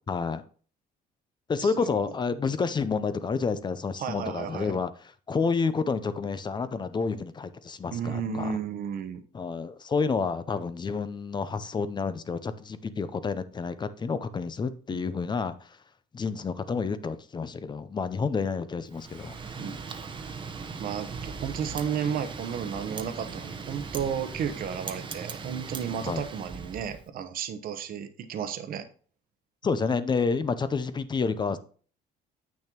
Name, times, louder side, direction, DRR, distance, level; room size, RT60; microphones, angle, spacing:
voice 1, 0.1-0.4 1.5-4.9 5.3-8.6 9.3-15.8 16.1-19.7 26.0-26.2 29.6-31.6, left 5 dB, 25° left, 13 dB, 0.6 m, -29 dB
voice 2, 1.6-1.9 4.0-4.7 7.9-9.2 14.9-15.0 19.6-19.7 20.8-28.8, right 7 dB, 60° right, 9 dB, 1.0 m, -33 dB
Domestic sounds home sounds, 18.9-26.0, equal, 5° left, 2.2 m, -57 dB
Wind, 18.9-27.0, right 5 dB, 30° right, 0.9 m, -39 dB
8.5 x 6.2 x 3.0 m, 0.42 s
cardioid pair, 110°, 17 cm